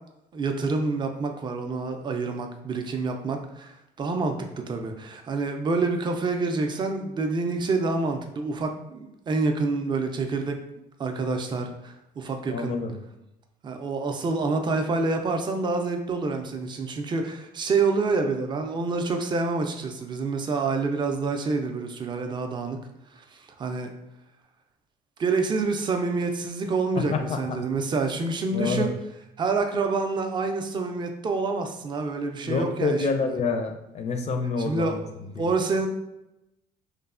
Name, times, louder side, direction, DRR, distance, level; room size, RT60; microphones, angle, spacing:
voice 1, 0.3-10.6 11.0-12.7 13.6-22.8 23.3-23.9 25.2-28.9 29.4-33.1 34.7-35.0 35.4-35.9, right 3 dB, 25° right, 5 dB, 0.3 m, -27 dB
voice 2, 12.5-12.9 27.0-27.6 28.5-28.9 32.4-35.0 35.4-35.5, left 4 dB, 40° left, 5 dB, 0.4 m, -27 dB
3.1 x 2.1 x 2.4 m, 0.89 s
cardioid pair, 110°, 17 cm